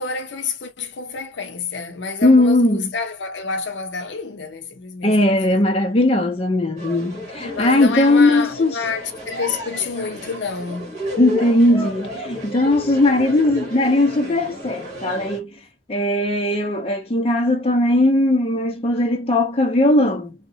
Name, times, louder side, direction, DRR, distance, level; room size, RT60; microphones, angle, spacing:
voice 1, 0.0-5.6 7.5-11.0, left 5 dB, 75° left, 0.6 m, -29 dB
voice 2, 2.2-2.9 5.0-8.8 11.2-15.5 15.9-20.3, left 1 dB, 35° left, 0.5 m, -18 dB
sound 1, 6.8-15.4, left 1 dB, 40° right, 1.3 m, -32 dB
2.8 x 2.1 x 2.7 m
head